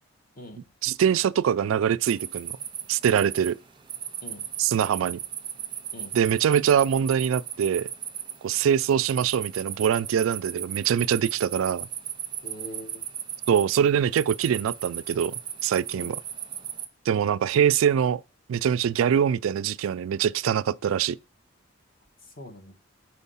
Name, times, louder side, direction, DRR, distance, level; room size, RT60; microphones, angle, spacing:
voice 1, 0.8-2.5 2.9-3.6 4.6-5.2 6.1-7.9 8.4-11.9 13.5-16.2 17.1-18.2 18.5-21.2, right 8 dB, 80° right, 0.3 m, -23 dB
sound 1, 2.0-16.9, right 10 dB, 25° right, 0.5 m, -36 dB
voice 2, 12.4-13.0 15.9-16.2 22.4-22.7, left 1 dB, 45° left, 1.2 m, -42 dB
4.5 x 4.5 x 5.5 m
head